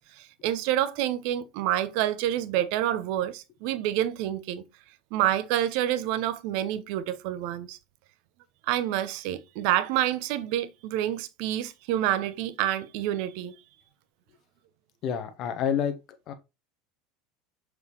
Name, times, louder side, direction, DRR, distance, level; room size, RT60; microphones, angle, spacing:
voice 1, 0.1-4.6 5.1-7.8 8.7-13.6, right 12 dB, 55° right, 0.8 m, -28 dB
voice 2, 15.0-15.9 16.3-16.4, left 8 dB, 45° left, 1.0 m, -28 dB
6.7 x 4.9 x 3.0 m
figure-of-eight pair, 75°, 0 cm